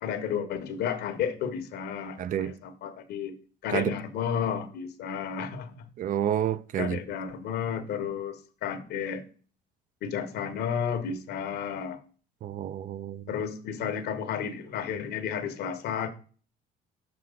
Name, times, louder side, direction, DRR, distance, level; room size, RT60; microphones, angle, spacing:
voice 1, 0.0-3.3 3.6-5.9 6.8-9.2 10.0-12.0 13.3-16.1, left 7 dB, 75° left, 1.0 m, -32 dB
voice 2, 2.2-2.5 3.7-3.9 6.0-7.0 12.4-13.3, right 10 dB, 50° right, 0.4 m, -29 dB
6.1 x 5.7 x 3.7 m
cardioid pair, 110°, 17 cm